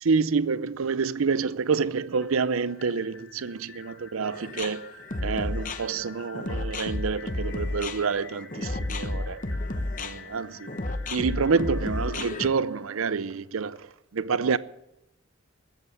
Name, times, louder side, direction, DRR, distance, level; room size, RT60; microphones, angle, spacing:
voice 1, 0.0-4.9 5.2-9.4 10.0-10.7 11.1-13.9 14.1-14.6, right 5 dB, 80° right, 0.6 m, -27 dB
sound 1, 1.9-13.8, left 5 dB, 70° left, 2.8 m, -49 dB
sound 2, 4.3-12.5, left 2 dB, 40° left, 1.0 m, -31 dB
14.5 x 8.1 x 9.5 m
head